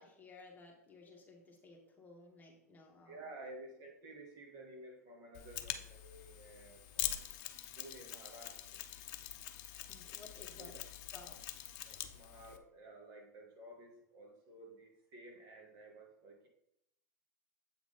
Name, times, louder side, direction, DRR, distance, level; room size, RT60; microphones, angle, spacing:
voice 1, 0.0-3.2 9.9-10.8 11.1-11.4, left 3 dB, 20° left, 0 dB, 1.6 m, -56 dB
voice 2, 3.0-7.2 7.8-8.8 10.5-10.8 11.8-16.5, right 2 dB, 45° right, 0 dB, 2.1 m, -53 dB
Mechanisms, 5.3-12.6, left 12 dB, 50° left, 0.7 m, -44 dB
7.9 x 3.7 x 5.1 m, 0.80 s
hypercardioid pair, 100°, 9 cm